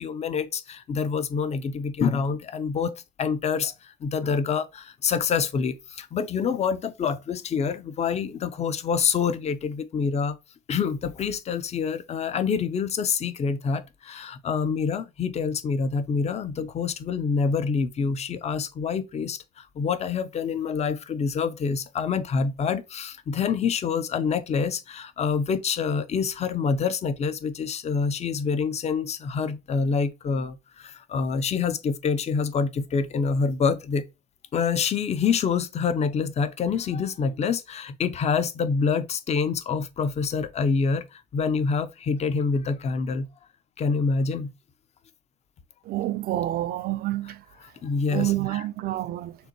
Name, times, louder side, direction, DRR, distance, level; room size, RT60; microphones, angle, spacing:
voice 1, 0.0-10.4 10.7-34.0 34.5-43.3 43.8-44.5 47.8-48.6, left 5 dB, 40° left, 0.6 m, -26 dB
voice 2, 45.9-47.4 48.1-49.4, right 15 dB, 60° right, 0.5 m, -28 dB
6.6 x 2.6 x 2.9 m
cardioid pair, 110°, 17 cm